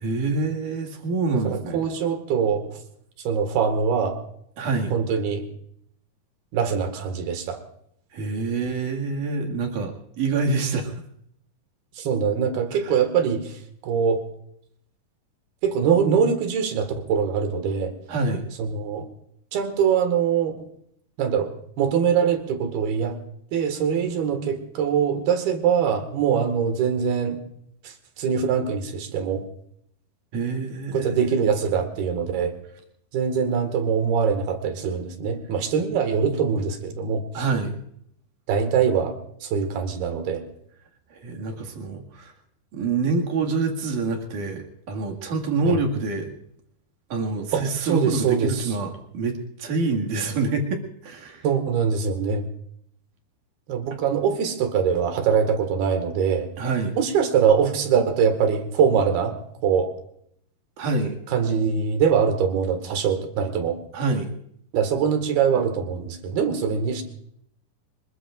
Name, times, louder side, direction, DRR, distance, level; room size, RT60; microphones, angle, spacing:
voice 1, 0.0-1.9 4.6-4.9 8.1-11.0 12.7-13.0 18.1-18.4 30.3-31.3 37.3-37.8 41.1-42.3 42.7-46.3 47.1-51.5 56.6-57.0 60.8-61.2 63.9-64.3, right 3 dB, 55° right, 2 dB, 3.4 m, -26 dB
voice 2, 1.5-2.8 3.3-4.2 4.9-5.5 6.5-7.6 12.0-13.5 13.8-14.2 15.6-17.9 18.6-19.1 19.5-20.5 21.2-23.2 23.5-27.4 27.9-29.4 30.9-32.6 33.1-37.4 38.5-39.1 39.4-40.4 45.7-45.8 47.5-47.6 47.9-48.6 51.4-52.4 53.7-56.5 57.0-59.4 59.6-59.9 61.3-63.8 64.7-67.0, right 7 dB, 75° right, 7 dB, 3.7 m, -23 dB
26.0 x 21.0 x 2.5 m, 0.70 s
omnidirectional pair, 4.6 m